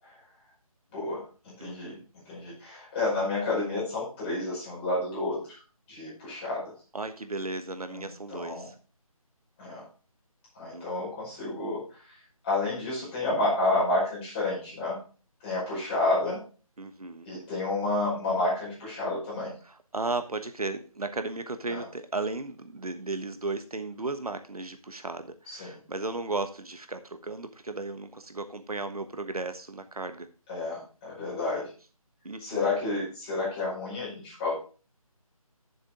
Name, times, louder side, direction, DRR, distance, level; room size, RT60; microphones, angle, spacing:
voice 1, 0.9-5.6 5.9-6.7 7.9-8.7 9.6-9.9 10.5-12.2 12.4-15.0 15.4-16.4 17.2-19.5 21.7-21.8 25.5-25.8 30.5-31.7 32.4-34.6, left 2 dB, 15° left, -6 dB, 5.3 m, -30 dB
voice 2, 1.6-2.0 6.9-8.7 10.7-10.8 16.8-17.3 19.9-30.3 32.2-32.7, right 3 dB, 80° right, 9 dB, 1.2 m, -35 dB
9.7 x 7.3 x 3.7 m, 0.37 s
figure-of-eight pair, 160°, 19 cm